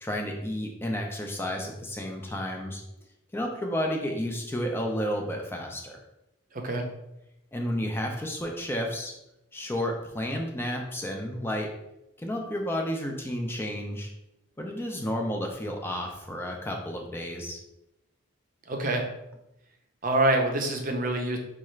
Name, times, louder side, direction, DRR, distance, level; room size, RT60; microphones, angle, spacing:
voice 1, 0.0-2.8 3.3-6.0 7.5-9.1 9.5-11.7 12.2-14.1 14.6-17.6, equal, 10° left, 1 dB, 0.4 m, -31 dB
voice 2, 6.5-6.8 18.7-19.0 20.0-21.4, right 2 dB, 40° right, 3 dB, 0.6 m, -26 dB
5.4 x 2.4 x 3.1 m, 0.90 s
head